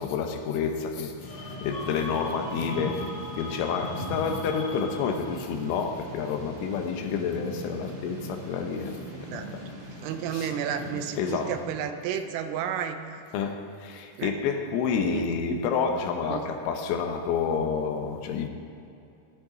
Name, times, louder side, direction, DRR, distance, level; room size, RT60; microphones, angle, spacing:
voice 1, 0.0-9.6 10.3-10.5 11.2-11.7 13.3-18.5, left 6 dB, 80° left, 3.3 m, -29 dB
sound 1, 1.2-5.4, left 2 dB, 45° left, 2.5 m, -40 dB
Thunder / Rain, 1.2-11.6, left 1 dB, 35° right, 3.1 m, -40 dB
voice 2, 10.0-13.2 14.2-14.3 15.0-15.3 16.3-16.4, right 8 dB, 90° right, 3.3 m, -32 dB
20.0 x 10.0 x 3.9 m
omnidirectional pair, 5.8 m